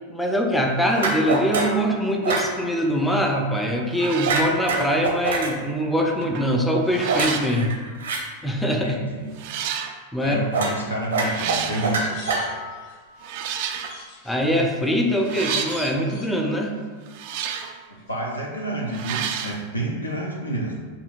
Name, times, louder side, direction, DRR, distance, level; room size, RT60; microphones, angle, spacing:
voice 1, 0.1-7.8 8.4-9.0 10.1-10.4 14.2-16.8, equal, 5° left, 1 dB, 0.5 m, -23 dB
sound 1, 0.9-1.8 2.2-2.5 4.2-5.5 7.1-8.2 10.5-10.8 11.1-12.8, right 3 dB, 70° right, 0.7 m, -24 dB
sound 2, 3.4-3.6 3.9-4.5 6.2-6.5 6.9-7.6 8.5-8.6 9.4-9.9 11.1-11.9 13.2-14.0 15.2-15.9 17.1-17.8 18.9-19.6, right 8 dB, 50° right, 0.3 m, -31 dB
voice 2, 8.8-9.3 10.2-12.2 17.9-20.9, right 1 dB, 80° left, -1 dB, 0.8 m, -29 dB
sound 3, 11.7-13.0 13.5-16.8 17.1-17.7 18.0-18.1, left 3 dB, 60° left, 1.3 m, -42 dB
6.7 x 2.8 x 2.5 m, 1.5 s
figure-of-eight pair, 90°, 0 cm